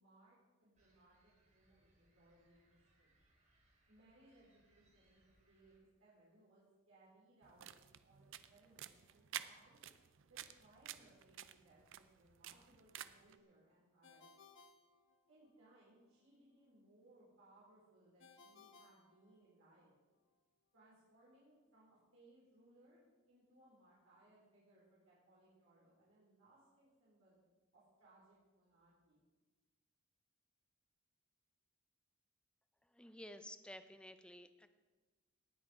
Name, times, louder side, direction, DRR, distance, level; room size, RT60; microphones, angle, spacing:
voice 1, 0.0-3.1 3.9-5.2 5.5-9.8 10.2-14.3 15.3-19.9 20.7-27.4 27.7-29.2, right 1 dB, 90° right, -8 dB, 4.2 m, -68 dB
sound 1, 0.8-5.8, right 1 dB, 40° right, 3.1 m, -76 dB
sound 2, 7.4-13.4, right 11 dB, 65° right, 0.5 m, -52 dB
Ringtone, 14.0-15.7 18.2-19.9, left 4 dB, 65° left, 1.0 m, -64 dB
voice 2, 32.8-34.7, left 1 dB, 5° left, 10 dB, 0.6 m, -53 dB
18.5 x 6.3 x 4.9 m, 1.3 s
head